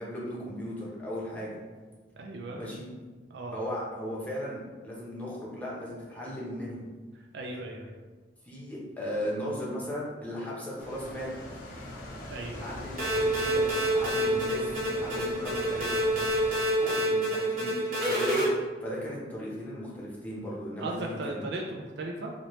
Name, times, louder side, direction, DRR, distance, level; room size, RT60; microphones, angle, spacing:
voice 1, 0.0-1.6 2.6-2.9 3.5-6.8 8.4-11.3 12.6-13.7 13.9-15.9 16.8-17.8 18.0-21.5, equal, 10° left, -6 dB, 0.7 m, -37 dB
voice 2, 2.2-2.6 3.3-3.6 7.3-7.9 12.3-12.7 20.8-22.3, right 2 dB, 70° right, 0 dB, 0.4 m, -37 dB
sound 1, 10.8-16.6, left 1 dB, 50° left, 0.6 m, -42 dB
sound 2, 13.0-18.5, right 1 dB, 45° right, 1.0 m, -27 dB
2.9 x 2.8 x 3.0 m, 1.4 s
head